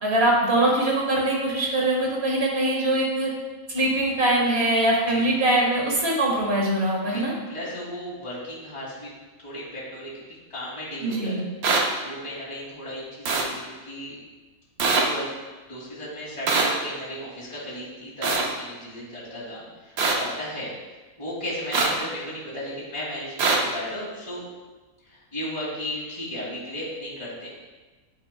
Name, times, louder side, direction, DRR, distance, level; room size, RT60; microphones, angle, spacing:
voice 1, 0.0-3.3 3.7-7.3 11.0-11.4, right 1 dB, 50° right, -3 dB, 1.8 m, -22 dB
voice 2, 7.1-9.1 9.4-10.2 10.5-11.4 12.0-14.2 14.8-15.3 15.7-20.7 21.2-24.4 25.0-27.5, equal, 20° left, -8 dB, 2.4 m, -35 dB
sound 1, 11.6-11.8 13.3-13.4 14.8-15.0 16.5-16.7 18.2-18.4 20.0-20.1 21.7-21.9 23.4-23.6, right 4 dB, 85° right, 1.3 m, -21 dB
8.9 x 6.8 x 2.2 m, 1.2 s
omnidirectional pair, 1.5 m